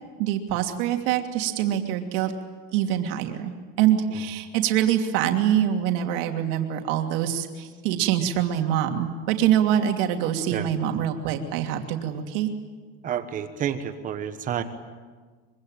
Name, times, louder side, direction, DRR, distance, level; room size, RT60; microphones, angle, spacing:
voice 1, 0.2-2.3 2.7-3.5 3.8-12.5, right 10 dB, 70° right, 4 dB, 2.9 m, -24 dB
voice 2, 13.0-14.6, right 9 dB, 25° right, 9 dB, 1.3 m, -29 dB
24.5 x 24.0 x 9.1 m, 1.4 s
cardioid pair, 180°, 29 cm